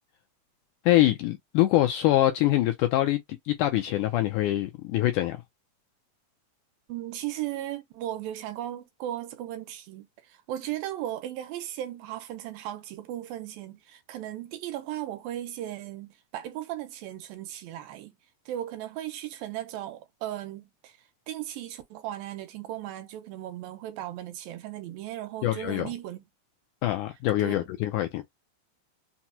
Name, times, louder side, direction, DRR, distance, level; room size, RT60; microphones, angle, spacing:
voice 1, 0.9-3.2 3.5-5.4 25.4-25.9 26.8-28.2, left 15 dB, 80° left, 1.8 m, -24 dB
voice 2, 6.9-18.2 18.5-21.0 21.3-26.2 27.4-27.5, right 13 dB, 90° right, 2.4 m, -36 dB
5.9 x 2.1 x 2.8 m
omnidirectional pair, 4.1 m